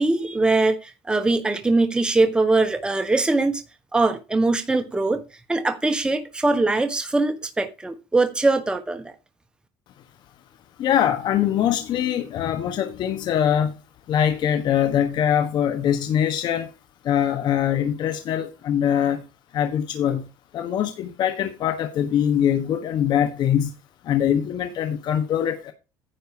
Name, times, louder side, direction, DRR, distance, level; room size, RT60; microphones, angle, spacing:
voice 1, 0.0-3.6 3.9-5.2 5.5-9.1, right 3 dB, 10° right, 1.2 m, -22 dB
voice 2, 10.8-13.8 14.1-16.7 17.0-19.2 19.5-20.3 20.5-23.7 24.0-25.7, left 9 dB, 55° left, 1.3 m, -23 dB
10.0 x 4.1 x 6.7 m
cardioid pair, 120°, 9 cm